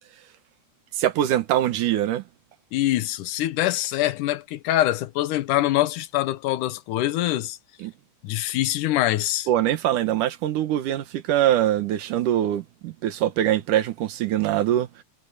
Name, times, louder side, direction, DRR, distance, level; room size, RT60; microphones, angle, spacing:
voice 1, 0.9-2.2 7.8-7.9 9.5-14.9, right 12 dB, 85° right, 2.8 m, -23 dB
voice 2, 2.7-7.6 8.2-9.5, left 14 dB, 85° left, 2.4 m, -24 dB
omnidirectional pair, 3.5 m